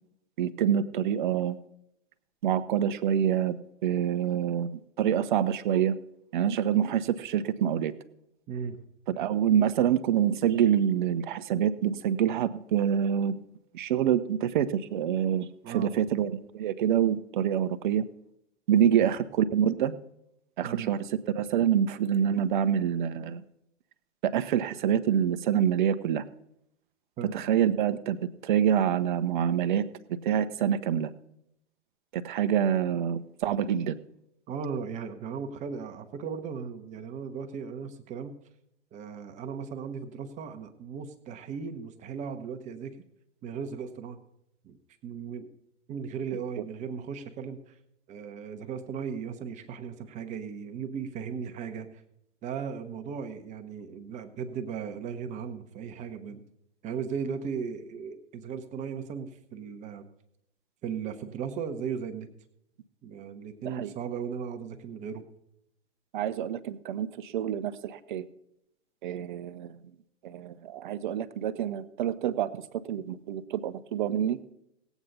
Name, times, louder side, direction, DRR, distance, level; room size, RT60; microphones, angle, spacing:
voice 1, 0.4-1.6 2.4-4.7 5.0-5.9 6.3-7.9 9.1-13.4 13.7-18.0 18.7-19.9 20.6-23.4 24.2-26.2 27.3-28.2 28.4-29.8 30.2-31.1 32.1-34.0 46.6-46.7 63.6-63.9 66.1-68.2 69.0-69.9 70.2-72.6 72.9-74.4, right 9 dB, 40° right, 12 dB, 0.8 m, -26 dB
voice 2, 8.5-8.8 15.6-16.0 19.0-19.1 20.6-20.9 27.2-27.3 34.5-38.3 38.9-43.0 43.4-44.2 44.6-44.8 45.0-45.5 45.9-47.7 48.1-52.0 52.4-56.4 56.8-60.0 60.8-62.3 63.0-65.2, right 6 dB, 20° right, 8 dB, 1.0 m, -37 dB
18.0 x 8.1 x 4.0 m, 0.79 s
figure-of-eight pair, 110°, 37 cm